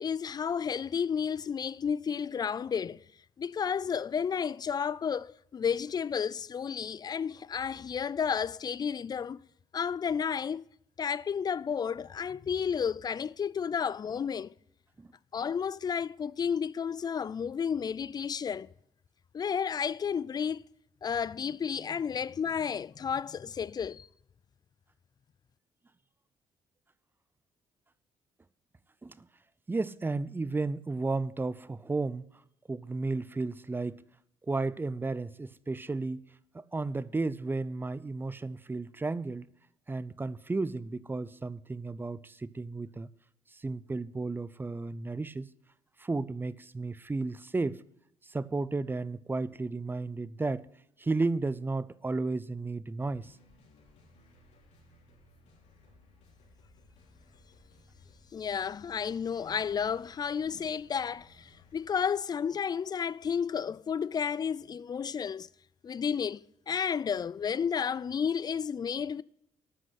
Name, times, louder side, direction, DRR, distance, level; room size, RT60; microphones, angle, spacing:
voice 1, 0.0-3.0 3.4-9.4 9.7-10.7 11.0-14.5 15.3-18.7 19.3-20.6 21.0-24.1 58.3-65.5 65.8-69.2, left 7 dB, 35° left, 0.4 m, -32 dB
voice 2, 29.7-32.3 32.7-34.0 34.4-36.2 36.5-39.5 39.9-43.1 43.5-45.5 46.0-47.8 48.2-50.7 51.0-53.4, right 3 dB, 15° right, 0.5 m, -33 dB
sound 1, 53.0-61.9, left 2 dB, 70° left, 3.2 m, -60 dB
9.2 x 6.2 x 8.4 m
supercardioid pair, 70°, 12 cm